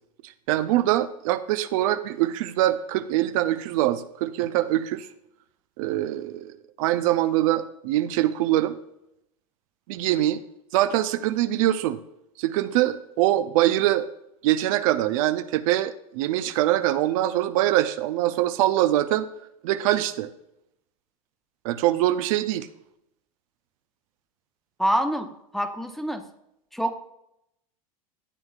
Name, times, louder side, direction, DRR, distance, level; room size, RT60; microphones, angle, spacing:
voice 1, 0.5-5.1 5.8-8.8 9.9-10.4 10.7-12.0 12.4-14.1 14.4-19.2 19.6-20.3 21.6-22.7, right 14 dB, 65° right, 11 dB, 0.6 m, -23 dB
voice 2, 24.8-26.2 26.7-27.0, equal, ahead, 5 dB, 0.9 m, -26 dB
13.0 x 7.9 x 2.4 m, 0.82 s
hypercardioid pair, 95°, 19 cm